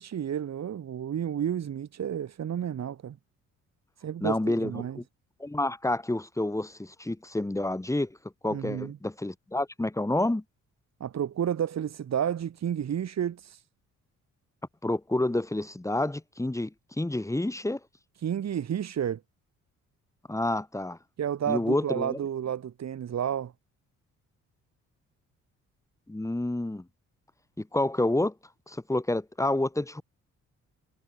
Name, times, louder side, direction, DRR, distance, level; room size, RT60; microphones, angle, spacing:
voice 1, 0.0-3.2 4.0-5.0 8.5-9.0 11.0-13.6 18.2-19.2 21.2-23.5, right 9 dB, 60° right, 7.0 m, -31 dB
voice 2, 4.2-5.0 5.4-8.2 8.4-10.4 14.8-17.8 20.3-21.0 21.5-22.2 26.1-26.8 27.6-28.3 28.7-30.0, left 1 dB, 10° left, 3.3 m, -29 dB
cardioid pair, 90°, 30 cm